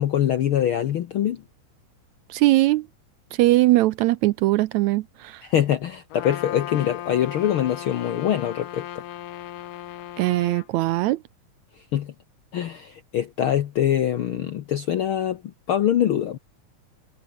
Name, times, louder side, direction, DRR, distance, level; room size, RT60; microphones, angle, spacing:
voice 1, 0.0-1.4 5.4-9.0 11.9-12.1 12.5-15.4 15.7-16.4, left 10 dB, 70° left, 1.2 m, -24 dB
voice 2, 2.3-2.9 3.3-5.4 10.2-11.2, right 17 dB, 75° right, 1.8 m, -20 dB
Trumpet, 6.1-10.7, left 13 dB, 90° left, 2.9 m, -36 dB
omnidirectional pair, 3.6 m